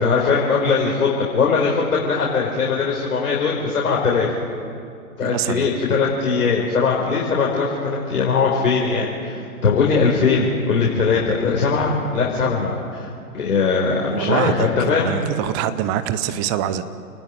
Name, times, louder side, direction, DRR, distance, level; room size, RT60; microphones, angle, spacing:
voice 1, 0.0-4.3 5.2-15.2, left 5 dB, 65° left, -3 dB, 4.7 m, -20 dB
voice 2, 5.2-5.7 14.1-16.8, right 10 dB, 15° right, 12 dB, 0.5 m, -24 dB
28.5 x 20.0 x 9.2 m, 2.5 s
hypercardioid pair, 130°, 46 cm